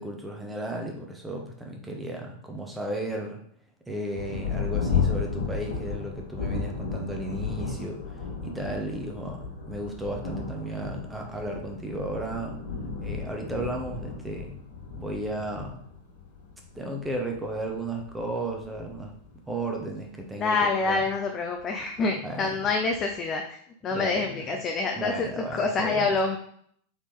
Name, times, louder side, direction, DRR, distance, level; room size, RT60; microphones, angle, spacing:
voice 1, 0.0-3.4 3.9-8.2 8.4-12.5 13.0-14.5 15.0-15.8 16.8-19.1 19.5-21.1 22.2-22.6 23.9-24.5 25.0-26.1, right 1 dB, 5° right, 1 dB, 0.8 m, -34 dB
Thunder, 4.1-20.2 20.9-21.0 21.6-22.0, left 5 dB, 60° left, 1.1 m, -34 dB
voice 2, 20.4-25.3 25.5-26.4, left 4 dB, 25° left, 3 dB, 0.5 m, -27 dB
4.1 x 3.5 x 3.3 m, 0.65 s
figure-of-eight pair, 90°, 0 cm